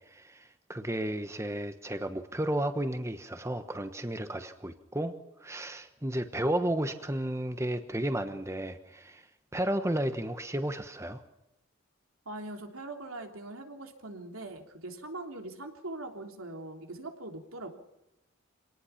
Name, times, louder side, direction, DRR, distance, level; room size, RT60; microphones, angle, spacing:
voice 1, 0.1-5.1 5.4-9.3 9.5-11.2, right 1 dB, 15° right, 8 dB, 1.1 m, -33 dB
voice 2, 12.2-17.7, right 2 dB, 85° right, 4 dB, 3.3 m, -42 dB
25.5 x 18.5 x 5.9 m, 0.88 s
head